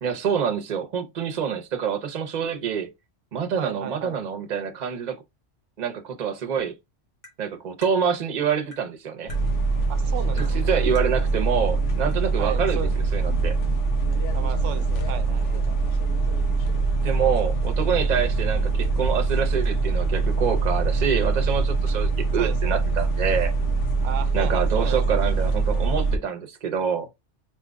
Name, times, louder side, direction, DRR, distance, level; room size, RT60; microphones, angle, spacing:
voice 1, 0.0-2.9 3.3-5.2 5.8-6.7 7.4-9.3 10.4-13.6 17.0-23.5 24.3-27.1, right 7 dB, 45° right, 0.8 m, -26 dB
voice 2, 3.6-4.2 9.9-10.7 12.4-13.0 14.3-15.7 22.4-22.8 24.0-25.0, right 9 dB, 90° right, 0.9 m, -34 dB
Tap, 7.2-7.4 7.8-8.0 8.7-8.9 9.3-9.4 10.4-10.6 11.0-11.1 12.1-12.2 12.7-12.8, left 1 dB, 50° left, 1.7 m, -44 dB
sound 1, 9.3-26.2, right 3 dB, 90° left, 1.2 m, -23 dB
4.4 x 3.7 x 2.3 m
omnidirectional pair, 1.2 m